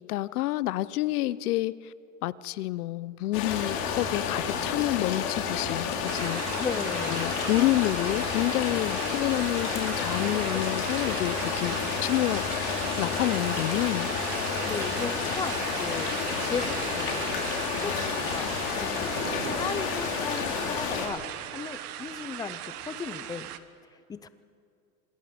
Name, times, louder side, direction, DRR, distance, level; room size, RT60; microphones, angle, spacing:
voice 1, 0.1-1.9 2.2-6.4 7.1-12.4 13.0-14.1, left 16 dB, 70° left, 0.8 m, -28 dB
sound 1, 3.3-21.1, left 7 dB, 55° left, 4.1 m, -30 dB
sound 2, 6.0-23.6, right 12 dB, 70° right, 1.4 m, -37 dB
voice 2, 6.6-7.3 14.6-19.1 19.5-23.5 24.1-24.3, left 5 dB, 10° left, 0.5 m, -37 dB
26.5 x 20.5 x 5.1 m
hypercardioid pair, 125°, 46 cm